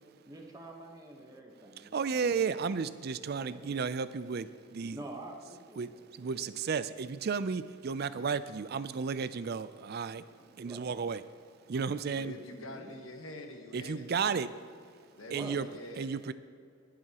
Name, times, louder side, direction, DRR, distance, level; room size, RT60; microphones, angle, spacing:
voice 1, 0.3-2.9 3.4-3.7 4.8-6.5 10.6-10.9 12.5-13.0 15.3-15.6, right 2 dB, 15° right, 1 dB, 1.1 m, -48 dB
voice 2, 1.8-5.0 5.8-10.2 10.5-11.2 11.7-12.3 13.7-14.5 15.3-15.7 16.0-16.3, right 5 dB, 50° right, 14 dB, 0.4 m, -33 dB
voice 3, 12.1-14.4 15.2-16.1, left 1 dB, 75° left, 4 dB, 1.3 m, -46 dB
22.5 x 7.6 x 2.9 m, 2.4 s
head